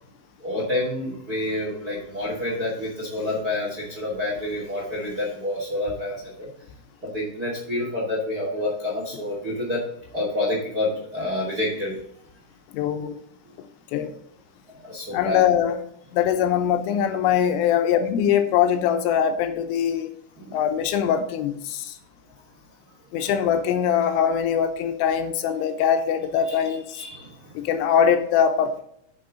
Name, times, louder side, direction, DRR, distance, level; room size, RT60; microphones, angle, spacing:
voice 1, 0.4-6.5 7.0-9.8 10.1-11.9 14.8-15.4 20.4-20.6 26.5-26.6 26.9-27.6, left 1 dB, 35° right, -3 dB, 1.5 m, -28 dB
voice 2, 12.7-13.2 13.9-14.1 15.1-15.8 16.1-20.1 20.5-22.0 23.1-27.0 27.5-28.8, left 8 dB, 85° left, 8 dB, 3.3 m, -22 dB
9.3 x 6.9 x 3.8 m, 0.71 s
omnidirectional pair, 5.8 m